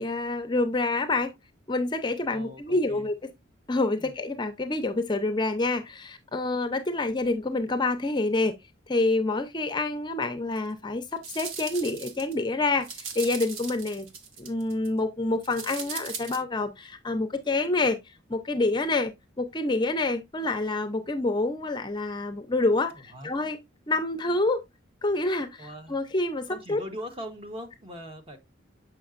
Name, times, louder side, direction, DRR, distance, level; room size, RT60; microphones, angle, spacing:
voice 1, 0.0-1.3 1.7-3.1 3.7-8.5 8.9-14.1 14.4-19.1 19.4-23.6 23.9-24.6 25.0-26.8, left 2 dB, 20° left, 0.5 m, -27 dB
voice 2, 2.3-3.1 4.0-4.1 22.9-23.3 25.6-26.0 26.5-28.4, equal, 30° right, 1.1 m, -41 dB
sound 1, 10.6-10.7 11.2-12.3 12.7-14.9 15.4-16.4, right 5 dB, 85° right, 1.3 m, -38 dB
6.9 x 5.8 x 2.4 m
head